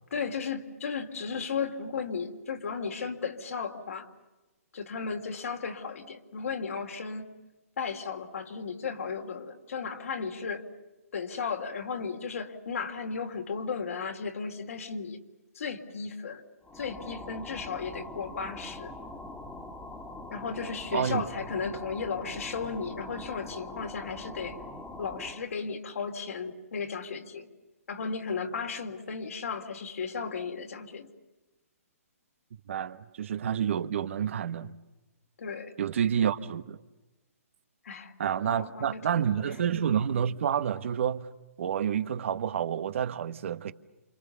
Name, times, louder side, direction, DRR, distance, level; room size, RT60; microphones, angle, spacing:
voice 1, 0.1-4.1 4.7-7.3 7.8-10.6 11.1-15.2 15.6-16.4 16.7-18.9 20.3-24.6 25.0-27.5 27.9-31.1 35.4-35.7 37.8-38.1 38.4-39.6, left 5 dB, 70° left, 3.4 m, -35 dB
sound 1, 16.6-25.5, left 2 dB, 10° left, 2.1 m, -43 dB
voice 2, 20.9-21.2 32.7-34.7 35.8-36.8 38.2-41.3 41.6-43.7, right 8 dB, 55° right, 1.3 m, -29 dB
29.0 x 27.0 x 7.0 m
hypercardioid pair, 150°, 8 cm